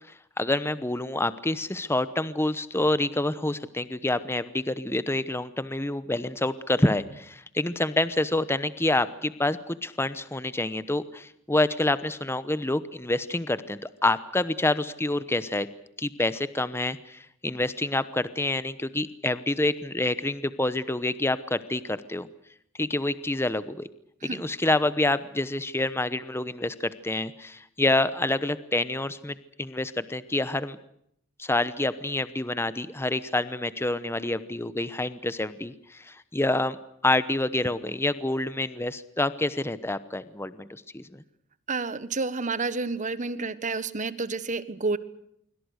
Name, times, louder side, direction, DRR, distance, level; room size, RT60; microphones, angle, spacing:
voice 1, 0.4-15.7 16.0-22.3 22.8-23.9 24.2-30.8 31.4-36.8 37.0-41.2, left 2 dB, 10° left, 14 dB, 0.9 m, -27 dB
voice 2, 41.7-45.0, right 3 dB, 40° right, 15 dB, 1.4 m, -30 dB
26.0 x 24.5 x 6.5 m, 0.73 s
head